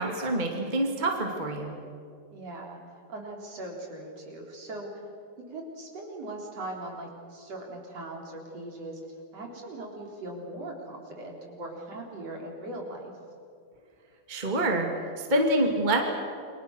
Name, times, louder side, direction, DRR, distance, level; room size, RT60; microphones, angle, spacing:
voice 1, 0.0-1.7 14.3-14.9 15.2-16.0, right 1 dB, 15° right, 1 dB, 2.3 m, -26 dB
voice 2, 2.3-2.8 3.1-5.0 5.5-9.0 9.3-13.1, right 1 dB, 55° right, 0 dB, 4.9 m, -40 dB
29.0 x 23.5 x 6.5 m, 2.3 s
omnidirectional pair, 3.5 m